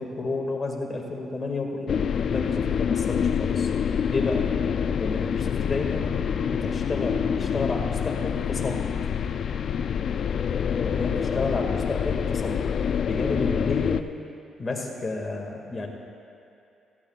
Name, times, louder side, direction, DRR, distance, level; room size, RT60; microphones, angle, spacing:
voice 1, 0.0-3.7 4.1-4.5 5.0-6.1 6.5-8.9 10.8-12.6 13.0-14.1 14.6-15.9, left 3 dB, 30° left, 0 dB, 2.1 m, -31 dB
sound 1, 1.9-14.0, left 7 dB, 60° left, 0.4 m, -26 dB
18.0 x 15.0 x 2.4 m, 2.6 s
cardioid pair, 90°, 0 cm